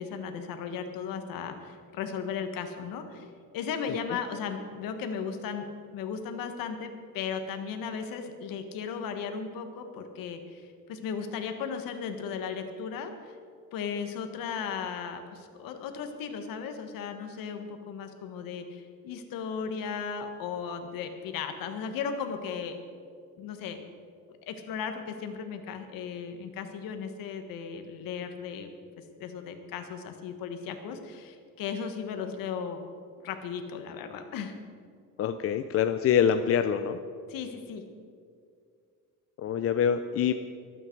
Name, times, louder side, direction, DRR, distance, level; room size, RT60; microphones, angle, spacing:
voice 1, 0.0-3.3 3.5-5.6 5.9-13.4 13.7-22.8 23.4-23.8 24.5-28.7 29.2-32.8 33.2-34.6 37.3-37.8, left 6 dB, 85° left, 6 dB, 1.6 m, -36 dB
voice 2, 35.2-37.0 39.4-40.3, left 8 dB, 45° left, 8 dB, 0.5 m, -25 dB
24.0 x 9.0 x 4.7 m, 2.2 s
cardioid pair, 150°, 33 cm